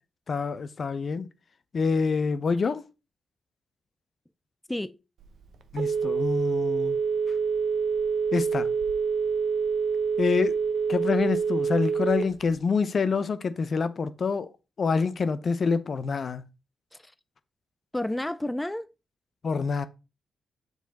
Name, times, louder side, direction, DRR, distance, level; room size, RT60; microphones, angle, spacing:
voice 1, 0.3-1.3 1.7-2.8 5.7-7.0 8.3-8.7 10.2-10.5 10.9-14.5 14.8-16.4 19.4-19.9, left 5 dB, 55° left, 0.6 m, -26 dB
Telephone, 5.2-12.6, right 5 dB, 70° right, 0.7 m, -26 dB
voice 2, 17.9-18.9, left 1 dB, 15° left, 0.4 m, -31 dB
7.1 x 4.1 x 4.0 m
hypercardioid pair, 40°, 0 cm